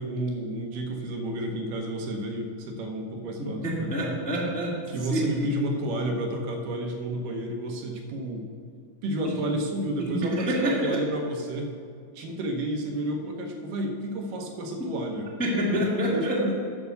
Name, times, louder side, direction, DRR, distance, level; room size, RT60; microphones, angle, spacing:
voice 1, 0.0-4.1 4.9-8.5 9.0-11.7 12.2-15.3 16.1-16.5, right 1 dB, 80° right, 2 dB, 2.6 m, -31 dB
voice 2, 3.4-4.7 5.0-5.6 10.0-11.0 14.8-14.9 15.4-16.4, equal, 5° left, -5 dB, 0.9 m, -27 dB
8.8 x 6.9 x 6.8 m, 2.3 s
omnidirectional pair, 3.9 m